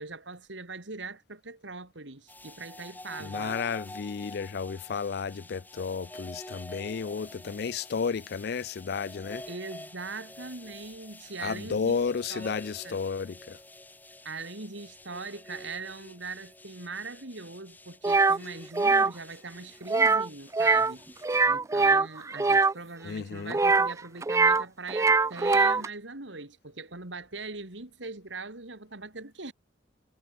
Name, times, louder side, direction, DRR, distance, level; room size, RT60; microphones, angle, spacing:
voice 1, 0.0-3.6 9.5-12.0 12.3-13.0 14.2-21.1 21.5-29.5, right 3 dB, 80° right, 3.2 m, -41 dB
sound 1, 2.3-21.4, left 1 dB, 10° left, 1.7 m, -48 dB
voice 2, 3.2-9.4 11.4-13.6 23.0-23.6, left 5 dB, 60° left, 0.4 m, -32 dB
sound 2, 18.0-18.4 18.7-19.1 19.9-20.3 20.5-20.9 21.2-22.7 23.5-24.6 24.9-25.9, right 4 dB, 15° right, 0.3 m, -22 dB
head